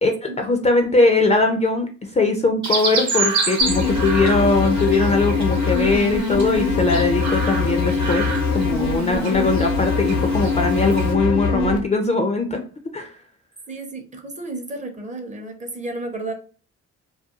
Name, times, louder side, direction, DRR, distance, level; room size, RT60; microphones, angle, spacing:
voice 1, 0.0-8.3 8.5-12.6 12.9-13.1, left 3 dB, 25° left, 5 dB, 0.4 m, -20 dB
Chirp tweet, 2.6-11.1, right 4 dB, 70° right, 0.9 m, -29 dB
sound 1, 3.6-11.8, left 4 dB, 80° left, 0.7 m, -22 dB
voice 2, 13.7-16.3, right 2 dB, 25° right, 4 dB, 0.6 m, -32 dB
2.4 x 2.2 x 2.8 m, 0.38 s
cardioid pair, 90°, 30 cm